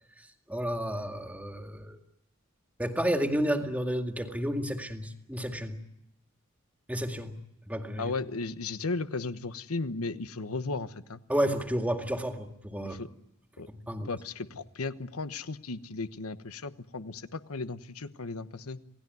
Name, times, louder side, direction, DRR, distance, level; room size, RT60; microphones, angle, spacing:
voice 1, 0.2-2.0 2.8-5.8 6.9-7.3 7.7-8.1 11.3-13.0 13.7-14.1, equal, 5° right, 5 dB, 2.1 m, -31 dB
voice 2, 8.0-11.2 12.8-13.1 13.6-13.7 14.0-18.8, left 3 dB, 85° left, 12 dB, 1.1 m, -35 dB
28.0 x 18.0 x 9.4 m, 0.84 s
head